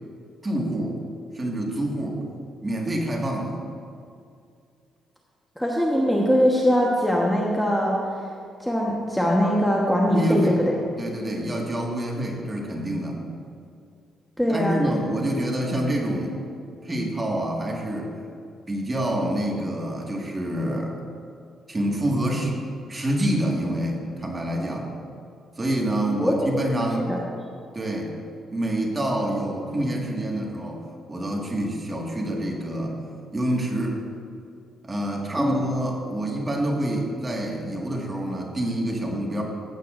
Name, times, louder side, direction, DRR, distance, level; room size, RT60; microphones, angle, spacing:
voice 1, 0.4-1.0 1.3-2.2 2.6-3.6 10.1-10.6 11.0-13.2 14.5-16.4 16.8-18.1 18.7-21.0 21.7-22.5 22.9-24.9 25.6-27.2 27.7-28.1 28.5-33.0 33.3-34.0 34.8-39.4, right 1 dB, 20° right, 0 dB, 1.7 m, -27 dB
voice 2, 5.6-8.0 8.6-10.7 14.4-14.8 26.2-26.3 27.1-27.2 35.4-35.5, equal, 5° left, -2 dB, 1.1 m, -21 dB
14.5 x 8.2 x 2.5 m, 2.4 s
cardioid pair, 90°, 0 cm